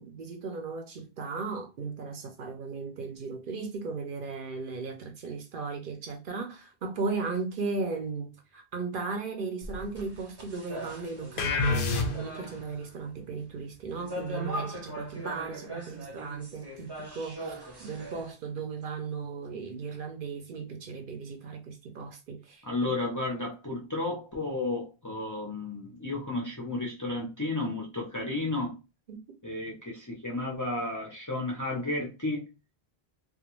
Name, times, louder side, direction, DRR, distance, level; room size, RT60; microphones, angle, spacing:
voice 1, 0.0-22.9 29.1-29.2, right 4 dB, 65° right, 0.7 m, -36 dB
sound 1, 9.6-12.9 13.9-18.3, right 1 dB, 30° right, 0.6 m, -40 dB
sound 2, 11.4-12.5, left 3 dB, 65° left, 0.7 m, -27 dB
voice 2, 22.6-28.7 29.4-32.4, left 2 dB, 25° left, 0.5 m, -32 dB
2.3 x 2.2 x 3.0 m
omnidirectional pair, 1.0 m